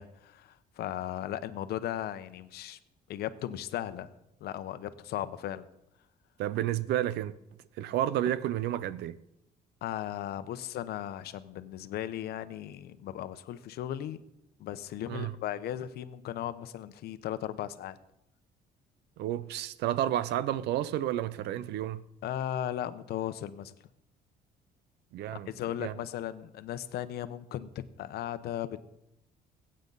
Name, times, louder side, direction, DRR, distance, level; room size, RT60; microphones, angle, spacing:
voice 1, 0.0-2.8 3.1-4.1 4.4-5.7 9.8-14.2 14.6-18.0 22.2-23.7 25.3-28.8, left 11 dB, 70° left, 0.9 m, -36 dB
voice 2, 6.4-7.4 7.7-9.2 15.1-15.3 19.2-22.0 25.1-25.5 25.8-25.9, right 12 dB, 80° right, 0.7 m, -31 dB
21.5 x 8.9 x 4.0 m
cardioid pair, 110°, 17 cm